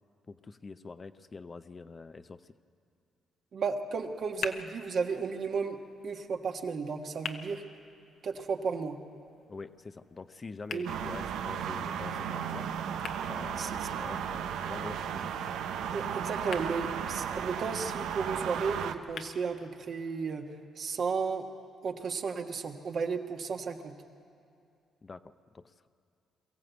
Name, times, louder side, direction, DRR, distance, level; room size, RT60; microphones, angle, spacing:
voice 1, 0.3-2.5 9.5-12.7 13.3-15.3 25.0-25.9, left 4 dB, 30° left, 11 dB, 0.6 m, -45 dB
voice 2, 3.5-5.8 6.0-7.6 8.2-9.0 10.7-11.0 13.6-14.0 15.9-21.5 21.8-23.9, right 5 dB, 55° right, 4 dB, 1.5 m, -34 dB
sound 1, 4.0-20.0, left 6 dB, 65° left, 1.2 m, -48 dB
sound 2, 10.9-19.0, right 8 dB, 85° right, 0.9 m, -35 dB
23.0 x 15.0 x 8.2 m, 2.5 s
cardioid pair, 90°, 0 cm